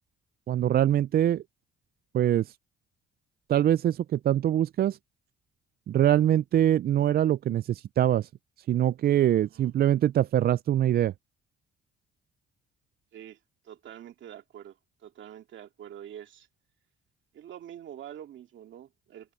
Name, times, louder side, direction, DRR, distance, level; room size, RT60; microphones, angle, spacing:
voice 1, 0.5-1.4 2.1-2.5 3.5-5.0 5.9-8.3 8.7-11.1, right 11 dB, 50° right, 0.4 m, -23 dB
voice 2, 9.3-9.7 13.1-13.4 13.6-16.5 17.3-19.3, right 10 dB, 70° right, 2.4 m, -46 dB
cardioid pair, 90°, 20 cm